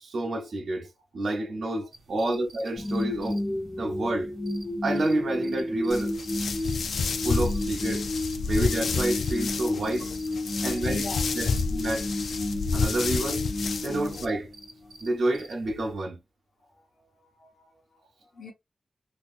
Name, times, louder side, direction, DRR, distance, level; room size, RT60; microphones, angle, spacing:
voice 1, 0.0-3.4 3.8-4.3 4.8-6.2 7.2-8.1 8.5-10.1 10.6-11.0 11.3-12.1 12.7-13.5 13.8-14.5 15.0-16.2, right 1 dB, 65° right, 0.6 m, -29 dB
sound 1, 1.9-15.9, right 1 dB, 85° right, 0.9 m, -51 dB
sound 2, 2.8-14.9, left 1 dB, 20° left, 0.7 m, -32 dB
sound 3, 5.9-14.2, left 4 dB, 90° left, 0.4 m, -30 dB
voice 2, 10.5-11.2 11.5-11.6 12.4-12.5 13.8-14.0 16.6-18.5, left 3 dB, 55° left, 1.4 m, -46 dB
2.8 x 2.5 x 3.5 m
wide cardioid pair, 155°, 0 cm